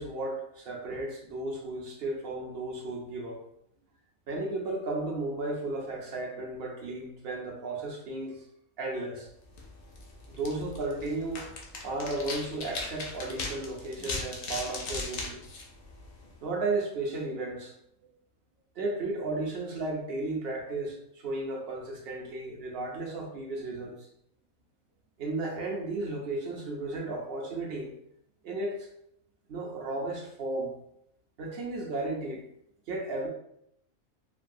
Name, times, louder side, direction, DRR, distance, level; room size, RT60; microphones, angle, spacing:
voice 1, 0.0-3.4 4.3-8.4 8.8-9.3 10.3-11.5 11.8-15.4 16.4-17.7 18.8-24.1 25.2-27.9 28.4-28.9 29.5-30.7 31.4-32.4 32.9-33.3, right 2 dB, 60° right, 0 dB, 0.6 m, -34 dB
sound 1, 9.4-16.4, left 3 dB, 60° left, 0.6 m, -39 dB
3.3 x 2.2 x 2.5 m, 0.74 s
omnidirectional pair, 1.5 m